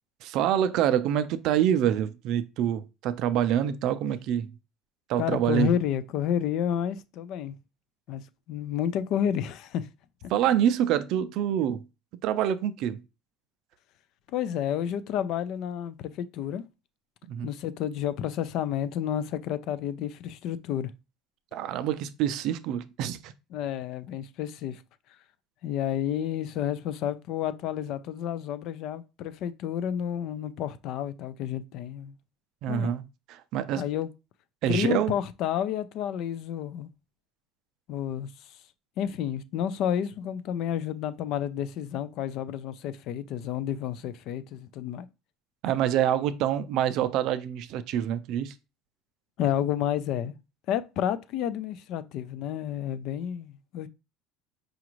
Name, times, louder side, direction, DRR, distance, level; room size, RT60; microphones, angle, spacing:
voice 1, 0.2-4.5 5.1-5.7 10.3-11.8 12.2-13.0 17.3-17.5 21.5-23.3 32.6-33.0 33.3-33.8 34.6-35.1 45.6-48.5, right 10 dB, 55° right, 0.3 m, -26 dB
voice 2, 5.2-7.5 8.1-9.9 10.2-10.3 14.3-16.6 17.4-20.9 23.5-24.8 25.6-32.2 32.7-33.0 33.8-34.1 34.7-36.9 37.9-38.6 39.0-45.1 49.4-50.3 50.7-53.9, left 10 dB, 50° left, 0.3 m, -30 dB
4.9 x 2.4 x 3.0 m
cardioid pair, 160°, 0 cm